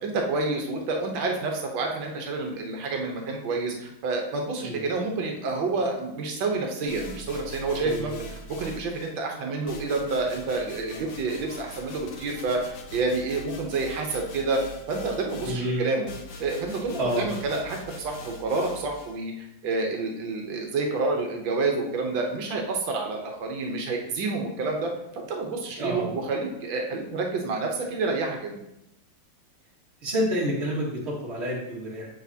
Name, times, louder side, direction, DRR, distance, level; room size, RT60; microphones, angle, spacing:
voice 1, 0.0-14.6 14.9-16.1 16.4-24.9 25.3-28.6, right 3 dB, 85° right, 2 dB, 1.6 m, -29 dB
sound 1, 6.9-9.2 9.7-19.2, left 1 dB, 60° left, 1.1 m, -43 dB
voice 2, 7.8-8.2 15.4-15.8 17.0-17.3 25.8-26.1 30.0-32.1, equal, 35° right, -4 dB, 2.0 m, -28 dB
7.6 x 6.2 x 2.7 m, 0.83 s
omnidirectional pair, 2.0 m